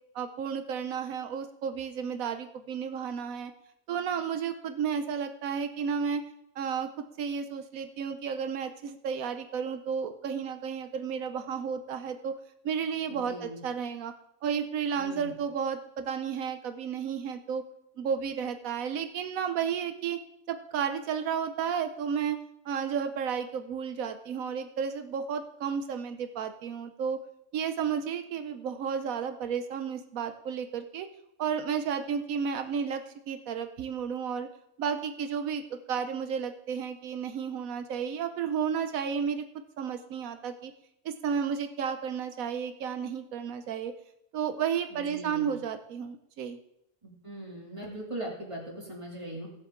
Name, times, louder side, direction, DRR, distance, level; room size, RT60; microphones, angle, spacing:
voice 1, 0.1-3.5 3.9-6.2 6.6-6.9 7.2-12.3 12.6-14.1 14.4-17.6 18.0-20.2 20.5-22.4 22.6-27.2 27.5-31.1 31.4-34.5 34.8-39.4 39.8-40.7 41.0-43.9 44.3-46.6, right 7 dB, 85° right, 8 dB, 1.2 m, -32 dB
voice 2, 13.1-13.6 14.9-15.3 44.9-45.5 47.0-49.5, right 1 dB, 20° right, -2 dB, 2.7 m, -40 dB
17.5 x 7.6 x 3.8 m, 0.80 s
omnidirectional pair, 1.4 m